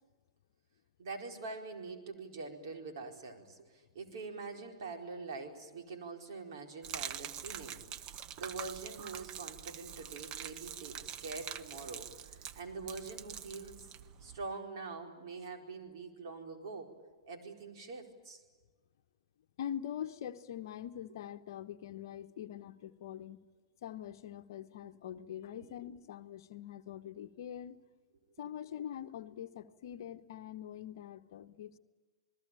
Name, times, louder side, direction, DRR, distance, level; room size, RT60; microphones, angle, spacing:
voice 1, 1.0-13.9 14.2-16.9 17.3-18.4 25.5-25.7, right 3 dB, 55° right, 3 dB, 4.5 m, -45 dB
Gurgling / Liquid, 6.8-14.5, right 10 dB, 35° right, 1.0 m, -45 dB
voice 2, 19.6-23.4 23.8-27.8 28.4-31.8, left 10 dB, 55° left, 9 dB, 1.1 m, -44 dB
28.5 x 20.5 x 9.0 m, 1.3 s
figure-of-eight pair, 110°, 3 cm